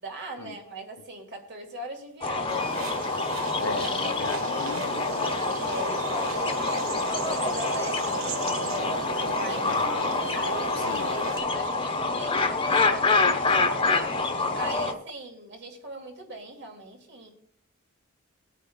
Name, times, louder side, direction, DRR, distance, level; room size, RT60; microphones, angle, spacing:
voice 1, 0.0-2.7 3.6-3.8 5.6-8.3 9.0-9.9 10.3-14.0 14.5-17.3, right 1 dB, 60° right, 2.3 m, -40 dB
sound 1, 2.2-14.9, left 3 dB, 25° left, 1.1 m, -27 dB
sound 2, 2.5-11.4, right 3 dB, 90° right, 1.3 m, -36 dB
voice 2, 3.6-5.3 9.7-10.1 10.8-11.2, left 5 dB, 80° left, 0.6 m, -37 dB
22.0 x 8.2 x 2.3 m
head